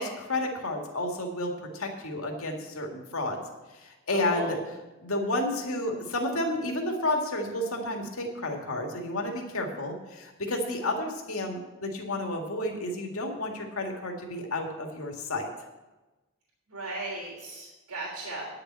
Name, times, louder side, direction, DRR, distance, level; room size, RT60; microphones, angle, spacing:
voice 1, 0.0-3.4 3.7-4.6 5.0-15.5, left 1 dB, 75° left, 2 dB, 2.0 m, -31 dB
voice 2, 4.1-4.6 16.7-18.5, right 2 dB, 90° right, -3 dB, 3.2 m, -36 dB
9.9 x 6.8 x 8.6 m, 1.1 s
head